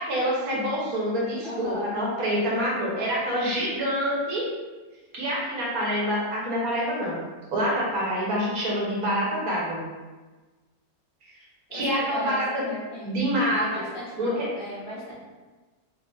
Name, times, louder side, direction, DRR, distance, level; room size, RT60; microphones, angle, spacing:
voice 1, 0.0-4.5 5.1-7.2 7.5-9.8 11.7-12.7 13.0-13.7 14.2-14.5, equal, 60° right, -5 dB, 1.4 m, -26 dB
voice 2, 1.4-2.0 11.7-13.2 13.6-15.1, left 1 dB, 35° left, -9 dB, 1.3 m, -37 dB
3.9 x 3.1 x 2.5 m, 1.3 s
omnidirectional pair, 1.9 m